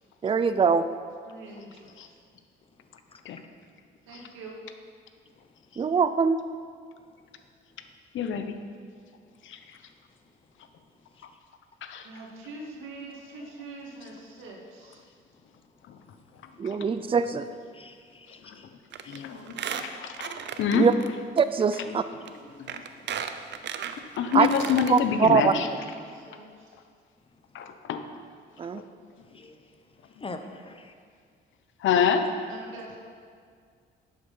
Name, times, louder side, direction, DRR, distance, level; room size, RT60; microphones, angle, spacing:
voice 1, 0.2-0.9 5.8-6.4 16.6-17.5 20.7-20.9 21.4-22.0 24.3-24.5 24.9-25.5 28.6-28.8, right 6 dB, 25° right, 12 dB, 0.5 m, -22 dB
voice 2, 1.3-2.2 4.1-4.6 12.0-15.0 19.3-19.9 25.8-26.8 32.5-33.0, right 2 dB, 90° right, -1 dB, 2.0 m, -44 dB
voice 3, 2.7-3.4 5.4-5.8 7.0-7.9 9.2-9.6 10.2-10.3 10.6-11.4 15.3-16.6 17.7-18.7 19.0-19.2 22.0-24.0 27.3-27.7 28.7-28.8 29.2-30.9, left 3 dB, 25° left, 7 dB, 1.0 m, -49 dB
voice 4, 8.1-8.6 9.4-9.6 11.8-12.1 15.9-16.0 16.6-16.8 18.4-18.6 19.1-19.5 19.8-19.9 20.2-20.3 20.6-20.9 22.6-22.8 24.2-25.7 27.5-28.0 28.7-28.8 31.8-32.3, left 7 dB, 75° left, 8 dB, 0.9 m, -26 dB
Squeak, 18.9-19.2 19.5-21.1 21.4-21.5 22.3-22.4 22.7-25.0 25.4-25.5 25.7-25.8, right 8 dB, 65° right, 0.7 m, -35 dB
10.5 x 7.8 x 5.5 m, 2.1 s
cardioid pair, 90°, 20 cm